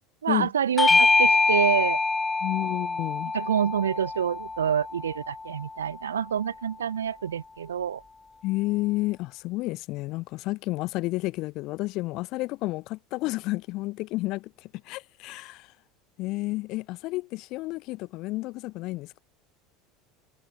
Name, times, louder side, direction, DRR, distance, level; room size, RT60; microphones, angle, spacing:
voice 1, 0.2-2.0 3.3-8.0, right 8 dB, 75° right, 0.6 m, -27 dB
Bell / Doorbell, 0.8-5.6, left 3 dB, 15° left, 0.5 m, -24 dB
voice 2, 2.4-3.3 8.4-15.7 16.2-19.2, left 20 dB, 50° left, 0.8 m, -31 dB
figure-of-eight pair, 75°, 0 cm